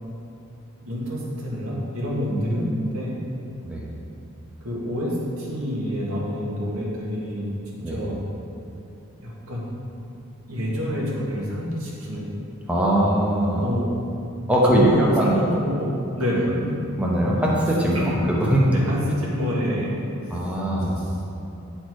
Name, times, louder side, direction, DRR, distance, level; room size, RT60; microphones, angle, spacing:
voice 1, 0.8-3.1 4.6-7.5 7.9-8.2 9.2-9.7 10.5-12.3 13.5-13.9 14.7-16.7 17.9-18.0 18.7-20.4 21.0-21.1, equal, 85° right, -5 dB, 1.8 m, -27 dB
voice 2, 12.7-13.6 14.5-15.3 17.0-18.0 18.4-18.6 20.3-21.0, right 1 dB, 5° right, -4 dB, 0.9 m, -21 dB
9.1 x 4.4 x 4.7 m, 2.6 s
head